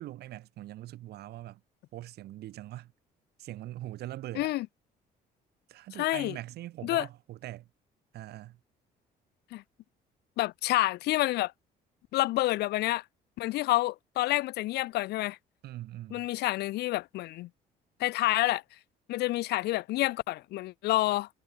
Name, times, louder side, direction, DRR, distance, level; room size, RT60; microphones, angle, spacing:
voice 1, 0.0-1.6 1.9-2.9 3.4-4.5 5.7-7.7 8.1-8.6 15.6-16.3, right 15 dB, 70° right, 2.6 m, -42 dB
voice 2, 6.0-6.4 6.8-7.1 9.5-9.6 10.4-11.5 12.1-13.0 13.4-15.4 16.1-17.5 18.0-18.6 19.1-21.3, left 17 dB, 75° left, 0.8 m, -28 dB
cardioid pair, 110°, 17 cm